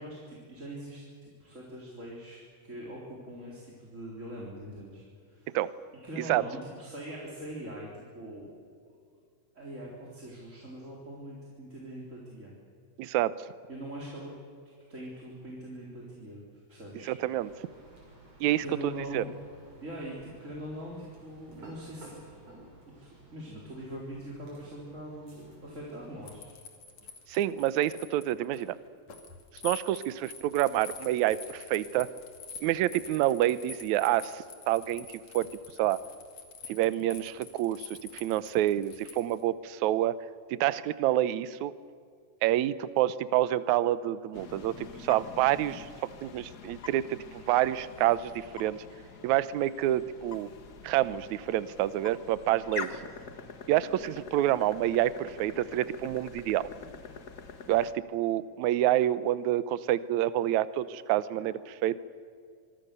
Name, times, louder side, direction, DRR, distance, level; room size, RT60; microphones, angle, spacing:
voice 1, 0.0-5.6 6.0-8.5 9.5-12.5 13.7-14.3 14.9-16.4 16.7-17.1 18.6-19.3 19.8-22.4 23.0-26.5 52.7-53.0 61.4-61.5, right 1 dB, 20° right, -4 dB, 4.0 m, -42 dB
voice 2, 13.0-13.3 17.0-17.5 18.4-19.2 27.3-28.8 29.6-32.1 32.6-35.1 35.3-35.5 35.8-36.0 36.7-40.2 40.5-41.7 42.4-48.8 49.2-50.5 50.8-52.9 53.7-56.7 57.7-62.0, right 13 dB, 70° right, 16 dB, 2.0 m, -28 dB
sound 1, 17.3-26.4, right 2 dB, 50° right, 7.4 m, -54 dB
sound 2, 26.3-39.4, left 6 dB, 55° left, 3.4 m, -47 dB
sound 3, 44.3-57.9, left 6 dB, 70° left, 0.9 m, -45 dB
25.5 x 23.5 x 6.8 m, 2.2 s
omnidirectional pair, 3.8 m